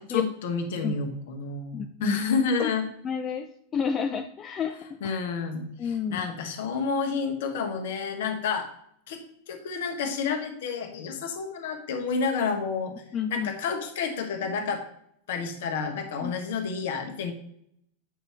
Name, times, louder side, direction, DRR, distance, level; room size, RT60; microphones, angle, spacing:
voice 1, 0.1-2.8 5.0-8.7 9.1-12.9 13.3-14.8 15.3-17.3, left 5 dB, 55° left, 4 dB, 1.2 m, -30 dB
voice 2, 1.7-2.2 2.6-2.7 3.0-3.5 3.7-5.2 5.8-6.3 13.1-13.5 16.2-16.3, left 7 dB, 25° left, 6 dB, 0.4 m, -30 dB
8.4 x 5.5 x 3.0 m, 0.70 s
figure-of-eight pair, 90°, 0 cm